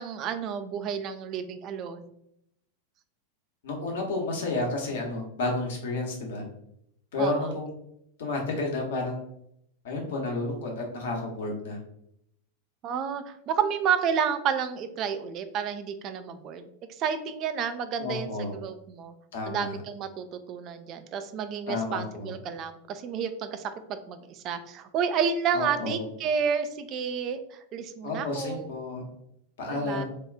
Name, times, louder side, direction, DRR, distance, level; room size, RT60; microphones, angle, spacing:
voice 1, 0.0-2.0 7.2-7.5 12.8-19.1 19.5-28.7 29.7-30.0, right 7 dB, 35° right, 9 dB, 0.3 m, -31 dB
voice 2, 3.6-6.4 7.1-7.7 8.2-9.2 9.8-11.8 18.0-18.5 19.3-19.8 21.7-22.3 25.5-26.0 28.0-29.0 29.6-30.0, left 2 dB, 60° left, 0 dB, 0.9 m, -31 dB
2.9 x 2.3 x 3.4 m, 0.76 s
figure-of-eight pair, 90°, 0 cm